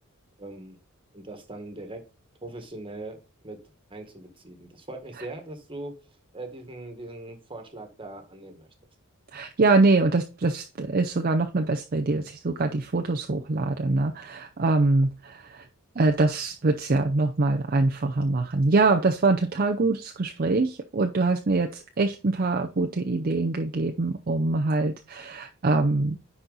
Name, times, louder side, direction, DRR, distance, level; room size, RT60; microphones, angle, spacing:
voice 1, 0.4-0.8 1.1-2.0 2.4-3.6 3.9-5.9 6.3-8.7, right 2 dB, 25° right, 5 dB, 1.5 m, -40 dB
voice 2, 9.3-15.7 16.0-26.2, right 3 dB, 45° right, 4 dB, 0.6 m, -24 dB
10.0 x 4.3 x 4.0 m, 0.32 s
head